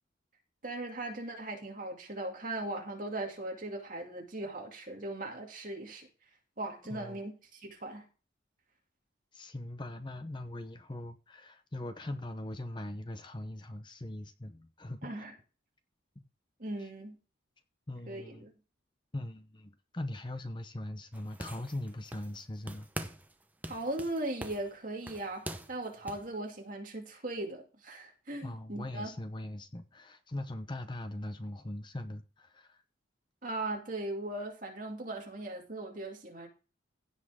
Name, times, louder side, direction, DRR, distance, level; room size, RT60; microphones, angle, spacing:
voice 1, 0.6-6.1 6.6-8.0 15.0-15.3 16.6-17.2 18.1-18.5 23.7-29.1 33.4-36.5, right 2 dB, 45° right, 2.5 m, -38 dB
voice 2, 6.9-7.3 9.3-15.3 16.2-16.3 16.8-16.9 17.9-18.5 19.1-22.9 28.4-32.8, left 1 dB, 25° left, 0.7 m, -41 dB
sound 1, 21.1-22.4 22.7-23.3 23.6-26.3, right 1 dB, 10° right, 0.8 m, -43 dB
16.0 x 5.6 x 3.6 m
head